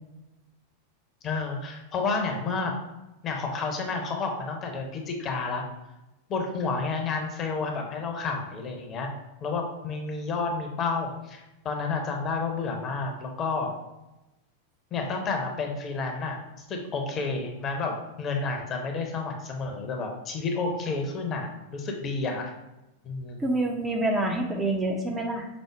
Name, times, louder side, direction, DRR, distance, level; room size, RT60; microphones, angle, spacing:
voice 1, 1.2-2.8 3.2-5.6 6.3-9.1 9.4-13.7 14.9-22.5 23.0-23.4, left 4 dB, 30° left, 2 dB, 0.8 m, -30 dB
voice 2, 23.4-25.5, right 2 dB, 15° right, 1 dB, 0.6 m, -27 dB
5.0 x 2.0 x 4.6 m, 0.98 s
figure-of-eight pair, 90°, 0 cm